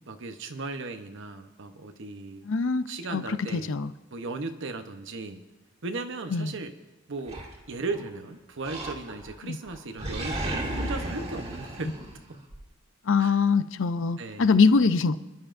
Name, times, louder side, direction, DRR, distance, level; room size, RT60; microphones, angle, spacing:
voice 1, 0.1-2.5 2.9-3.7 4.1-5.4 5.8-6.7 7.1-7.4 7.7-12.0 12.3-12.4 13.2-13.4 14.2-14.6, right 3 dB, 60° right, 8 dB, 0.9 m, -36 dB
voice 2, 2.4-3.9 6.3-6.5 9.4-9.6 13.1-15.2, left 4 dB, 60° left, 12 dB, 0.6 m, -23 dB
Animal, 7.3-8.1 8.6-9.4 9.7-12.6, right 1 dB, 30° right, 2.1 m, -34 dB
29.5 x 11.5 x 2.6 m, 1.1 s
head